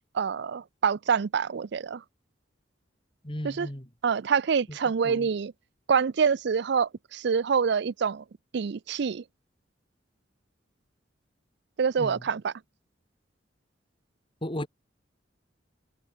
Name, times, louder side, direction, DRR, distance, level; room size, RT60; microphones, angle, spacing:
voice 1, 0.1-2.0 3.4-3.7 4.0-5.5 5.9-8.2 8.5-9.2 11.8-12.5, right 6 dB, 65° right, 0.4 m, -26 dB
voice 2, 3.2-3.9 5.0-5.3 12.0-12.2 14.4-14.7, left 1 dB, 30° left, 3.5 m, -35 dB
head